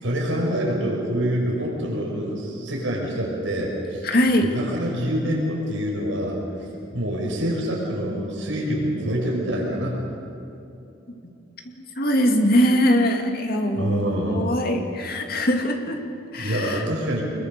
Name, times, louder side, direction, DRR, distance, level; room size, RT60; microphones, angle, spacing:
voice 1, 0.0-4.1 4.4-6.4 6.9-10.1 13.8-14.5 16.4-17.2, equal, 80° right, -2 dB, 5.6 m, -26 dB
voice 2, 4.0-4.5 12.0-16.0 16.3-16.8, equal, 50° left, 3 dB, 2.5 m, -21 dB
25.0 x 21.5 x 6.8 m, 2.8 s
head